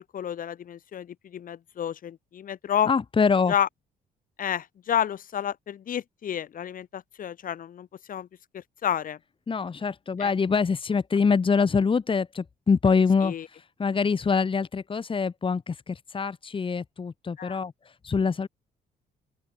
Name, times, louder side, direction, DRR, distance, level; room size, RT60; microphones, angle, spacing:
voice 1, 0.0-2.9 3.5-3.7 4.4-8.3 8.5-9.2 10.2-10.3 13.2-13.5 17.4-17.6, left 9 dB, 55° left, 6.7 m, -30 dB
voice 2, 2.8-3.5 9.5-18.5, left 5 dB, 30° left, 3.8 m, -25 dB
open air
cardioid pair, 105°, 16 cm